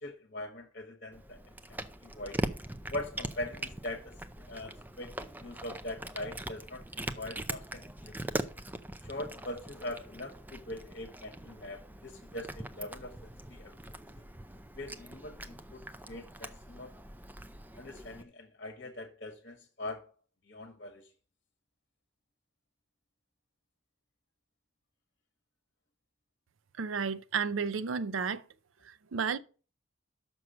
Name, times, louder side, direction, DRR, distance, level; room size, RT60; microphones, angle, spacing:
voice 1, 0.0-2.4 2.9-4.1 4.5-8.3 9.0-13.7 14.7-17.0 17.7-20.1 20.4-21.1, left 1 dB, 45° left, 1.3 m, -42 dB
Cat, 1.1-18.2, right 1 dB, 10° right, 0.5 m, -42 dB
voice 2, 26.8-28.4 28.8-29.4, right 6 dB, 85° right, 0.5 m, -32 dB
6.2 x 6.1 x 7.2 m
head